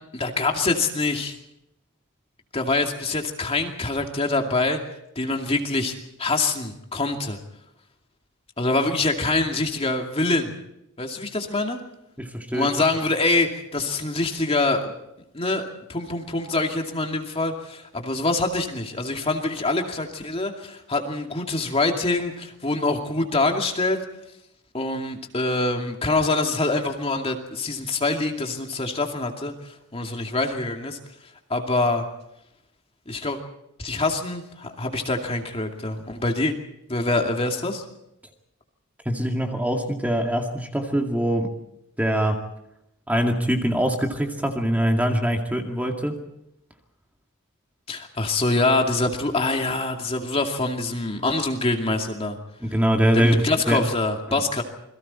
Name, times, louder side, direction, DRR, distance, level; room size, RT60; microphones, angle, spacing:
voice 1, 0.1-1.3 2.5-4.8 5.2-5.9 6.2-7.4 8.6-10.5 11.0-11.8 12.5-14.9 15.3-15.6 15.9-24.0 24.7-31.0 31.5-32.0 33.1-33.4 33.8-36.5 36.9-37.8 47.9-52.4 53.1-54.6, left 2 dB, 30° left, 3 dB, 2.4 m, -25 dB
voice 2, 12.2-12.7 39.1-41.5 42.0-42.4 43.1-46.2 52.6-53.8 54.3-54.4, equal, 5° right, 3 dB, 2.2 m, -23 dB
28.5 x 22.5 x 4.4 m, 0.82 s
head